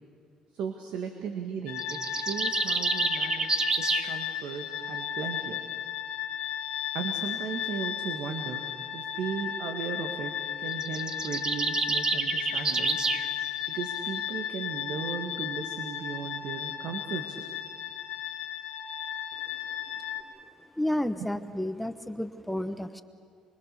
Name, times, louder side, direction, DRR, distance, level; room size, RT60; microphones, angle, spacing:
voice 1, 0.5-5.6 6.9-8.6 8.9-10.3 10.6-13.1 13.7-17.4 21.2-21.3, right 6 dB, 75° right, 4 dB, 1.8 m, -36 dB
sound 1, 1.7-20.2, left 9 dB, 75° left, 2.6 m, -35 dB
sound 2, 1.8-4.1 10.7-13.3, right 4 dB, 35° right, 1.3 m, -28 dB
voice 2, 20.8-23.0, left 1 dB, 5° left, 9 dB, 1.2 m, -31 dB
25.0 x 24.5 x 6.9 m, 2.1 s
supercardioid pair, 70°, 2 cm